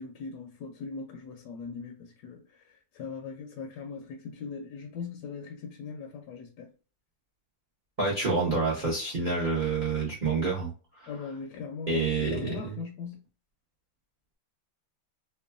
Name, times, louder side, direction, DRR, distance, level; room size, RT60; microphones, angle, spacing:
voice 1, 0.0-6.7 11.1-13.2, left 5 dB, 75° left, 1.1 m, -40 dB
voice 2, 8.0-10.7 11.0-11.1 11.9-12.8, right 4 dB, 50° right, 0.5 m, -28 dB
3.0 x 2.2 x 2.3 m
omnidirectional pair, 1.9 m